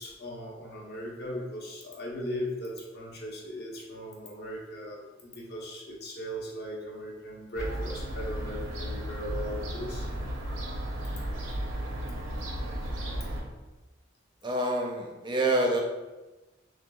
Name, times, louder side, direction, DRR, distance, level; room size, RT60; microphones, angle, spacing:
voice 1, 0.0-10.1, equal, 50° left, -2 dB, 0.7 m, -38 dB
Fowl / Gull seagull, 7.5-13.4, equal, 85° right, 0.7 m, -34 dB
voice 2, 14.4-15.8, right 1 dB, 25° right, 0 dB, 0.5 m, -27 dB
6.0 x 2.2 x 2.3 m, 1.1 s
head